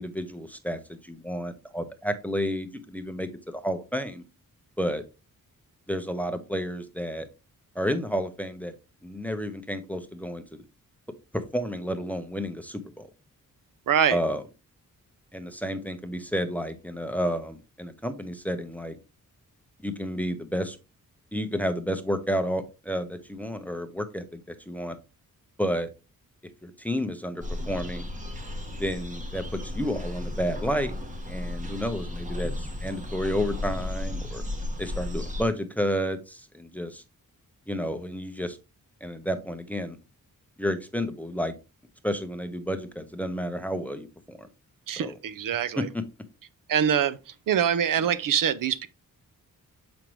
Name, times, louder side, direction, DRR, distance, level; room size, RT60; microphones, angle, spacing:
voice 1, 0.0-4.2 4.8-5.0 5.9-7.3 7.8-8.8 9.0-10.6 11.3-13.1 14.1-14.4 15.3-19.0 19.8-20.8 21.3-25.0 25.6-25.9 26.6-28.0 28.8-30.9 31.3-34.4 34.8-37.0 37.7-38.6 39.0-40.0 40.6-41.5 42.0-44.5 45.0-45.1 45.8-46.0, equal, 5° left, 0.6 m, -31 dB
voice 2, 13.9-14.2 44.9-45.9 46.7-47.2 47.5-48.9, right 8 dB, 70° right, 0.6 m, -24 dB
sound 1, 27.4-35.4, left 1 dB, 25° right, 1.1 m, -34 dB
7.3 x 5.1 x 3.1 m
wide cardioid pair, 170°, 34 cm